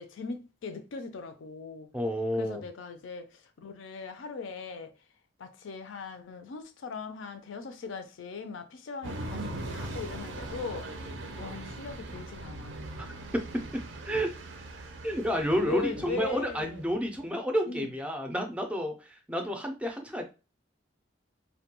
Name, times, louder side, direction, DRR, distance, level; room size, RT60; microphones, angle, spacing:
voice 1, 0.0-1.9 2.4-4.9 5.4-10.9 11.4-12.9 15.6-16.8 17.7-17.9, left 4 dB, 85° left, 0.4 m, -39 dB
voice 2, 1.9-2.6 13.0-13.1 13.3-14.3 15.0-20.3, equal, 5° right, 0.4 m, -30 dB
sound 1, 9.0-17.0, right 2 dB, 70° right, 0.5 m, -40 dB
2.2 x 2.2 x 2.8 m
head